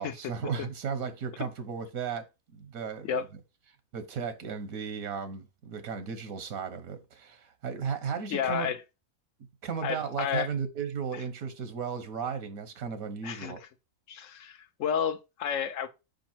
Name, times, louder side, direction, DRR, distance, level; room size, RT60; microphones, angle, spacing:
voice 1, 0.0-2.2 2.5-3.1 3.9-8.7 9.6-13.6, right 6 dB, 85° right, 1.3 m, -35 dB
voice 2, 8.3-8.8 9.8-10.5 11.1-11.2 13.2-13.7 14.1-15.9, left 8 dB, 70° left, 1.0 m, -31 dB
5.3 x 5.0 x 4.4 m
omnidirectional pair, 1.4 m